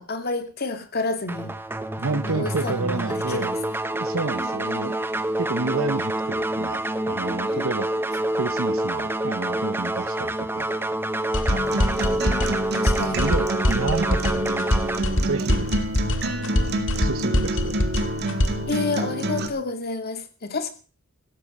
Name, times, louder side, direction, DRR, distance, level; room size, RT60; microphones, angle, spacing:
voice 1, 0.0-1.5 2.1-3.5 4.4-4.9 7.5-7.7 12.0-13.2 18.7-20.7, left 3 dB, 50° left, 2.4 m, -30 dB
sound 1, 1.3-15.0, right 1 dB, 10° right, 0.9 m, -27 dB
voice 2, 2.0-3.5 4.0-5.0 5.4-7.9 8.3-10.7 13.1-15.8 16.2-17.8, right 3 dB, 80° right, 0.9 m, -30 dB
sound 2, 11.3-18.7, left 1 dB, 65° left, 1.9 m, -24 dB
Acoustic guitar, 11.5-19.5, right 1 dB, 55° right, 2.1 m, -28 dB
16.0 x 13.5 x 5.3 m
head